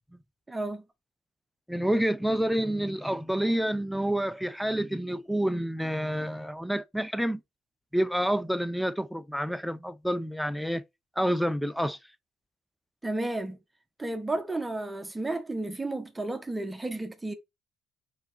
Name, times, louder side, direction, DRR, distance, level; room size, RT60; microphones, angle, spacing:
voice 1, 0.5-0.8 13.0-13.6 14.0-17.3, right 2 dB, 15° right, 1.2 m, -32 dB
voice 2, 1.7-7.4 7.9-10.8 11.2-12.0, equal, ahead, 0.7 m, -28 dB
5.1 x 4.6 x 4.5 m
figure-of-eight pair, 50°, 0 cm